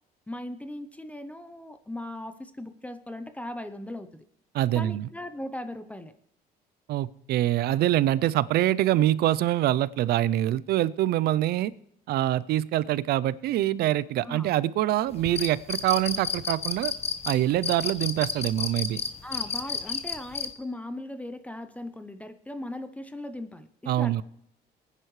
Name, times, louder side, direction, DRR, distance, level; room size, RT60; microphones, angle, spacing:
voice 1, 0.3-4.2 4.7-6.1 14.2-14.5 19.2-24.2, left 1 dB, 10° left, 10 dB, 0.6 m, -38 dB
voice 2, 4.5-5.1 6.9-11.7 12.1-16.9 17.2-19.0 23.9-24.2, right 13 dB, 70° right, 20 dB, 0.4 m, -25 dB
sound 1, 15.1-20.4, left 6 dB, 35° left, 1.0 m, -31 dB
20.0 x 9.8 x 3.2 m, 0.74 s
cardioid pair, 110°, 17 cm